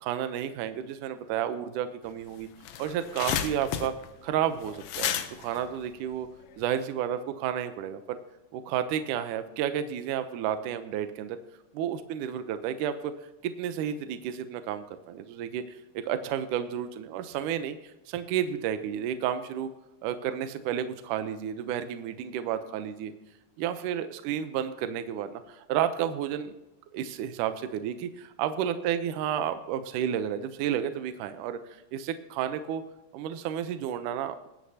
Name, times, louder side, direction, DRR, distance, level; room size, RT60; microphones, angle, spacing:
voice 1, 0.0-2.5 2.8-3.9 4.2-6.3 6.6-8.2 8.5-11.4 11.8-13.1 13.4-17.8 18.1-19.7 20.0-23.1 23.6-26.5 26.9-31.6 31.9-32.8 33.1-34.5, right 9 dB, 75° right, 10 dB, 2.2 m, -31 dB
sound 1, 2.1-2.2 2.4-6.7, left 9 dB, 80° left, 1.5 m, -33 dB
21.0 x 9.6 x 2.8 m, 0.93 s
omnidirectional pair, 3.9 m